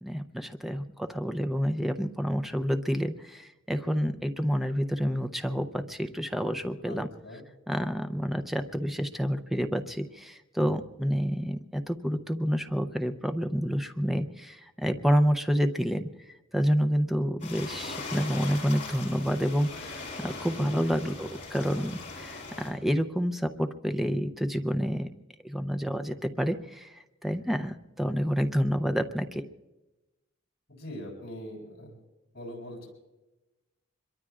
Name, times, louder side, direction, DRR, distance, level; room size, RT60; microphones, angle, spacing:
voice 1, 0.0-7.1 7.7-16.1 16.5-25.1 25.4-29.4, equal, ahead, 8 dB, 0.6 m, -29 dB
sound 1, 17.4-22.7, left 3 dB, 35° left, 5.9 m, -40 dB
voice 2, 30.7-31.9 32.3-32.9, left 1 dB, 50° left, -2 dB, 7.4 m, -41 dB
25.5 x 22.5 x 2.5 m, 1.0 s
head